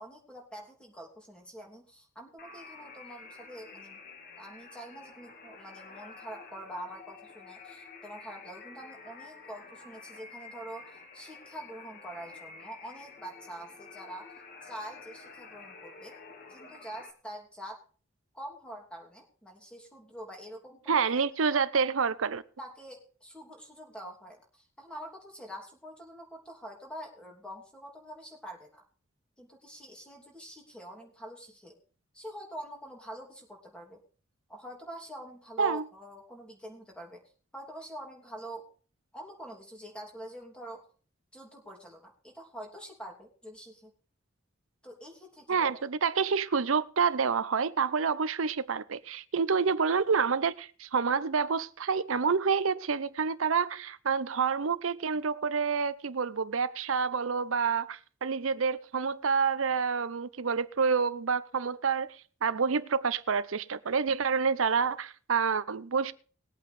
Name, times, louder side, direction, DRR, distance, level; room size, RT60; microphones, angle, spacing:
voice 1, 0.0-4.0 4.4-14.3 14.6-16.1 16.5-17.8 18.3-21.2 21.5-21.9 22.6-28.8 29.4-31.8 32.1-34.0 34.5-37.2 37.5-38.7 39.1-40.8 41.3-43.9 44.8-45.8, right 1 dB, 5° left, 2.9 m, -45 dB
sound 1, 2.4-17.1, left 4 dB, 45° left, 1.4 m, -49 dB
voice 2, 20.9-22.4 35.6-35.8 45.5-66.1, right 5 dB, 90° right, 0.7 m, -28 dB
20.5 x 8.5 x 3.4 m
head